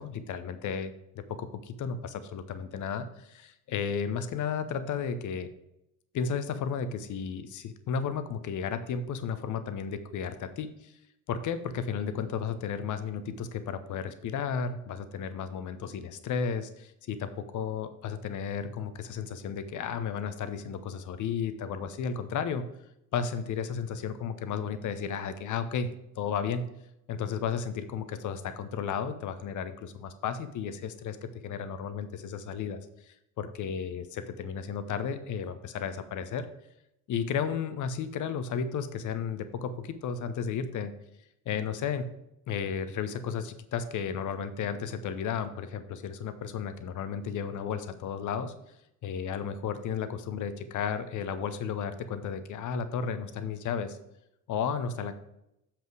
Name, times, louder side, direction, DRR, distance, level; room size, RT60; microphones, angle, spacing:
voice 1, 0.0-5.5 6.1-10.9 11.3-22.6 23.1-25.9 26.2-26.6 27.1-36.5 37.1-40.9 41.4-42.1 42.5-48.5 49.0-54.0 54.5-55.1, left 6 dB, 40° left, 11 dB, 0.9 m, -33 dB
7.4 x 5.8 x 4.9 m, 0.82 s
figure-of-eight pair, 55°, 46 cm